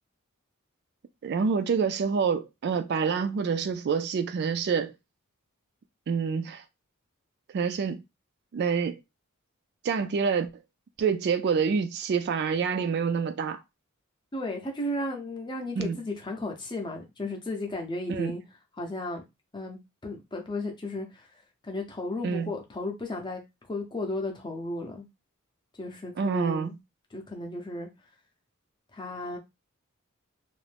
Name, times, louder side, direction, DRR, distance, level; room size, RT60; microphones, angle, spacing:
voice 1, 1.2-4.9 6.1-6.6 7.5-8.0 8.5-9.0 9.8-10.5 11.0-13.6 15.8-16.0 18.1-18.3 22.2-22.5 26.2-26.8, right 6 dB, 50° right, 0.3 m, -27 dB
voice 2, 14.3-18.4 18.8-19.2 19.5-21.3 21.6-23.4 23.7-25.1 25.8-26.7 27.1-27.9 28.9-29.4, left 2 dB, 20° left, 0.6 m, -34 dB
2.5 x 2.1 x 3.2 m
head